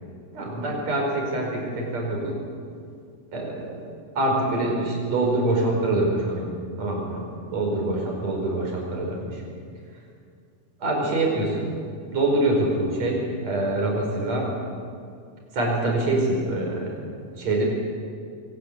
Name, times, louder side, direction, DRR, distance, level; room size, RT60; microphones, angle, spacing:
voice 1, 0.3-2.3 3.3-3.8 4.2-6.5 6.8-9.4 10.8-11.7 12.1-14.5 15.5-16.9 17.4-17.6, right 2 dB, 55° right, -1 dB, 6.1 m, -25 dB
23.0 x 17.5 x 8.6 m, 2.3 s
omnidirectional pair, 3.8 m